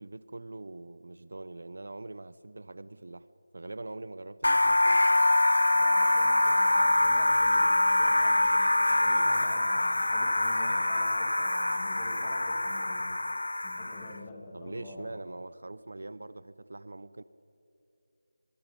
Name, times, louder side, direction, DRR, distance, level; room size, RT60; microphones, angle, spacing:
voice 1, 0.0-3.3 3.5-5.0 14.5-17.2, right 2 dB, 55° right, 16 dB, 0.7 m, -43 dB
sound 1, 4.4-14.2, left 2 dB, 90° left, 0.5 m, -25 dB
voice 2, 5.7-13.2 13.6-15.1, left 1 dB, 10° left, 0 dB, 2.3 m, -45 dB
24.5 x 23.0 x 5.3 m, 2.9 s
figure-of-eight pair, 175°, 0 cm